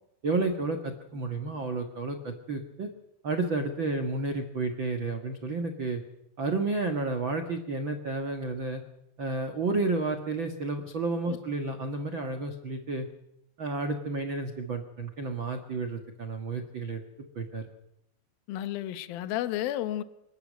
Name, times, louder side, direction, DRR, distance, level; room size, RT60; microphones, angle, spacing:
voice 1, 0.2-2.9 3.2-6.0 6.4-8.8 9.2-13.1 13.6-17.0 17.3-17.6, right 3 dB, 70° right, 5 dB, 1.1 m, -31 dB
voice 2, 18.5-20.0, left 13 dB, 70° left, 11 dB, 2.6 m, -32 dB
26.5 x 13.0 x 9.3 m, 0.83 s
omnidirectional pair, 5.0 m